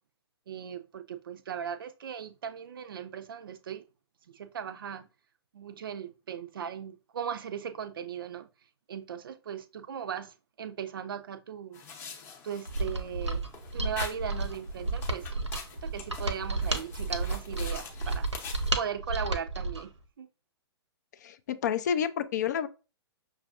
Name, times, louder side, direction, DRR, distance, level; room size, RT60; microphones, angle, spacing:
voice 1, 0.5-3.8 4.3-5.1 5.5-8.5 8.9-11.8 12.4-13.4 13.7-15.3 15.8-18.3 18.8-19.9 20.2-20.3, right 8 dB, 50° right, 0.5 m, -38 dB
sound 1, 11.7-18.7, left 6 dB, 15° left, 0.7 m, -45 dB
Mechanisms, 12.7-19.9, right 2 dB, 85° right, 0.8 m, -32 dB
voice 2, 21.2-22.7, left 8 dB, 40° left, 0.4 m, -29 dB
5.9 x 2.5 x 2.4 m
figure-of-eight pair, 120°, 14 cm